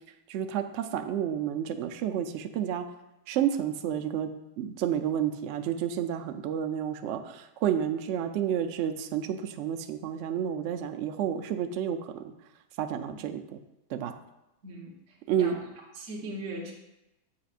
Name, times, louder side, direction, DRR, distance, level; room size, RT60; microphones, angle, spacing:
voice 1, 0.3-2.9 3.3-4.3 4.6-12.3 12.8-13.6 13.9-14.1 15.3-15.6, right 9 dB, 70° right, 6 dB, 0.7 m, -30 dB
voice 2, 14.6-15.6 15.9-16.7, right 2 dB, 55° right, -2 dB, 1.2 m, -40 dB
7.5 x 5.7 x 2.4 m, 0.94 s
omnidirectional pair, 1.7 m